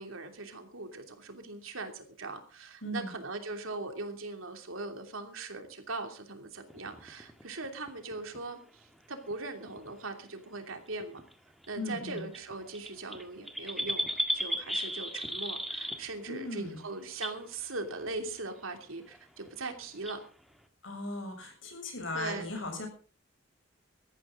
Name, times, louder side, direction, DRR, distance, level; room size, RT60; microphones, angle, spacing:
voice 1, 0.0-11.2 11.7-20.2 22.1-22.5, right 3 dB, 90° right, 5 dB, 2.9 m, -40 dB
voice 2, 2.8-3.2 11.8-12.3 16.3-16.8 20.8-22.9, left 2 dB, 65° left, 4 dB, 7.0 m, -37 dB
sound 1, 6.7-8.4 9.3-9.4 9.7-9.9 11.0-11.3 11.6-11.7 11.9-12.0 12.2-16.3 16.6-16.7 17.1-17.4 18.0-18.3 18.8-18.9 19.1-19.2 19.5-19.6 20.0-20.2, equal, ahead, 1.7 m, -35 dB
19.0 x 14.0 x 3.9 m, 0.36 s
head